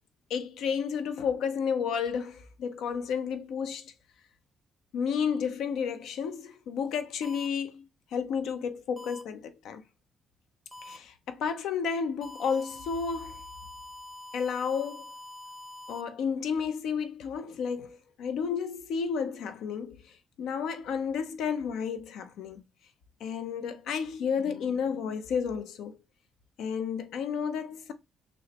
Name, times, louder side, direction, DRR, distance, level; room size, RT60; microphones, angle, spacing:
voice 1, 0.3-3.9 4.9-9.8 10.8-13.4 14.3-15.0 15.9-20.0 20.4-22.6 23.2-26.0 26.6-27.9, left 6 dB, 80° left, 0.5 m, -32 dB
sound 1, 7.2-7.5 9.0-9.2 10.7-11.0 12.2-16.0, left 2 dB, ahead, 0.6 m, -45 dB
6.1 x 2.1 x 2.8 m
cardioid pair, 90°, 0 cm